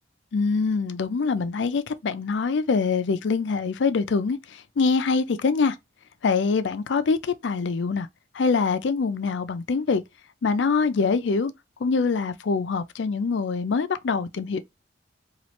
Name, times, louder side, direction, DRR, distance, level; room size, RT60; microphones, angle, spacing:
voice 1, 0.3-5.8 6.2-8.1 8.3-10.0 10.4-11.5 11.8-14.6, left 4 dB, 70° left, 0.4 m, -24 dB
3.1 x 2.4 x 2.9 m
head